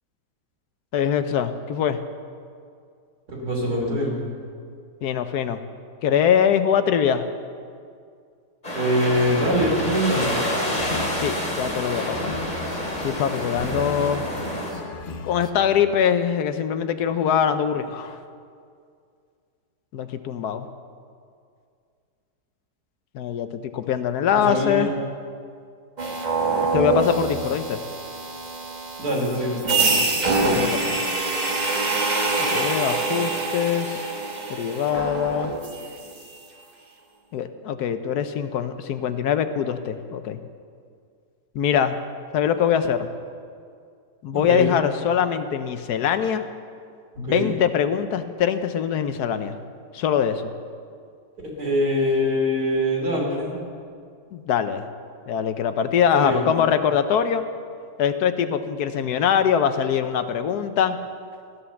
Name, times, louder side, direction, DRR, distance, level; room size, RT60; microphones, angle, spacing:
voice 1, 0.9-2.0 5.0-5.6 6.0-7.2 11.2-12.3 13.0-14.3 15.2-18.2 19.9-20.7 23.1-24.9 26.7-27.8 30.4-31.0 32.4-34.1 34.5-35.5 37.3-40.4 41.5-42.0 42.3-43.1 44.2-46.5 47.2-49.6 49.9-50.5 54.3-54.9 55.3-57.4 58.0-61.0, left 8 dB, 70° left, 10 dB, 1.2 m, -23 dB
voice 2, 3.3-4.2 8.7-10.4 24.3-24.9 29.0-29.6 44.3-44.7 47.2-47.5 51.4-53.6 56.1-56.5, equal, 65° right, -2 dB, 3.6 m, -23 dB
sound 1, 8.6-14.7, equal, 25° left, 2.6 m, -28 dB
sound 2, 9.0-15.5, left 5 dB, 50° left, 0.6 m, -36 dB
sound 3, 26.0-36.1, right 3 dB, 30° right, 1.3 m, -25 dB
14.0 x 10.0 x 7.0 m, 2.3 s
omnidirectional pair, 1.8 m